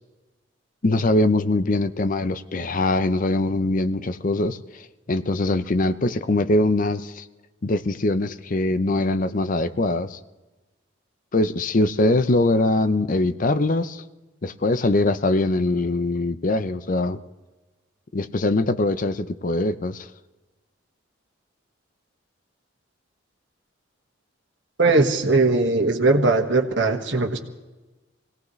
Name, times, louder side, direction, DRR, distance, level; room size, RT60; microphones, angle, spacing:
voice 1, 0.8-7.3 7.6-10.2 11.3-14.0 14.4-17.2 18.1-20.1, left 2 dB, 45° left, 13 dB, 0.6 m, -22 dB
voice 2, 24.8-27.4, right 3 dB, 70° right, 4 dB, 1.7 m, -19 dB
24.5 x 18.0 x 3.2 m, 1.2 s
head